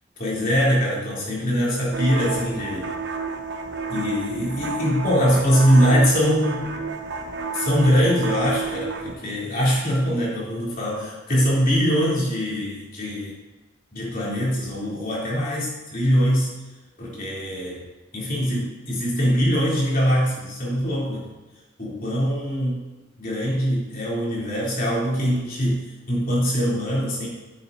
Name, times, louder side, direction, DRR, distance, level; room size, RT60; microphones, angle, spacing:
voice 1, 0.2-2.9 3.9-6.7 7.5-13.3 13.9-16.5 17.0-17.7 18.1-21.3 21.8-22.8 23.2-27.3, equal, 50° left, -6 dB, 3.5 m, -22 dB
sound 1, 1.9-9.1, right 4 dB, 65° right, 0.9 m, -31 dB
12.0 x 9.2 x 2.8 m, 1.2 s
head